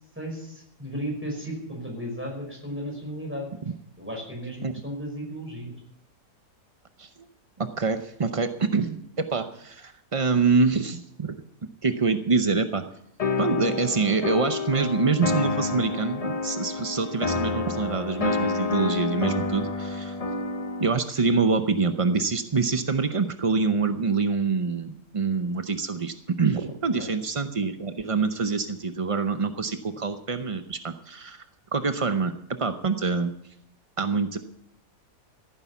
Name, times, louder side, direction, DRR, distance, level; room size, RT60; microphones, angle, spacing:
voice 1, 0.2-3.5 4.0-5.7 27.0-27.1, equal, 5° right, 0 dB, 5.3 m, -34 dB
voice 2, 7.6-11.4 11.8-12.8 13.4-20.1 20.8-31.4 31.7-32.3 32.6-33.3 34.0-34.4, right 4 dB, 55° right, 8 dB, 0.3 m, -25 dB
sound 1, 13.2-21.0, left 3 dB, 35° left, 0.6 m, -28 dB
15.5 x 9.6 x 7.1 m, 0.73 s
omnidirectional pair, 1.7 m